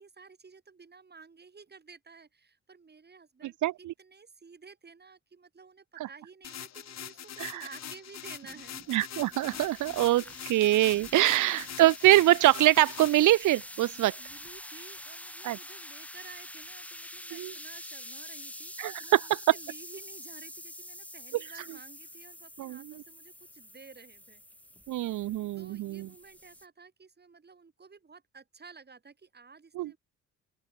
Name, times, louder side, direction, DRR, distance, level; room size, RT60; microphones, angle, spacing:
voice 1, 0.0-8.8 11.2-11.5 13.7-24.4 25.0-25.2 25.5-30.0, right 5 dB, 35° right, 7.9 m, -53 dB
voice 2, 3.6-3.9 7.4-7.6 8.9-14.1 15.4-15.6 17.4-17.5 18.8-19.2 22.6-22.8 24.9-26.1 29.8-29.9, right 15 dB, 80° right, 1.0 m, -24 dB
sound 1, 6.4-13.3, left 10 dB, 60° left, 2.3 m, -43 dB
sound 2, 8.5-26.7, left 1 dB, 5° left, 3.0 m, -46 dB
open air
cardioid pair, 90°, 30 cm